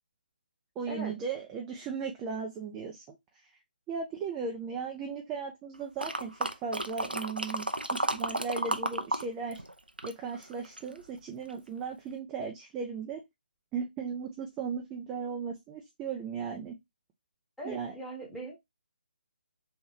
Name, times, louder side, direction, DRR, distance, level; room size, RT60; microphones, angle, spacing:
voice 1, 0.8-3.2 3.9-9.6 10.0-13.2 13.7-16.8 17.6-17.9, right 5 dB, 10° right, 1 dB, 0.4 m, -37 dB
sound 1, 6.0-9.2 9.5-11.0 11.5-11.6, right 1 dB, 85° right, 0.6 m, -32 dB
voice 2, 17.6-18.6, right 1 dB, 5° left, -4 dB, 1.2 m, -40 dB
3.6 x 3.1 x 2.8 m, 0.17 s
figure-of-eight pair, 145°, 5 cm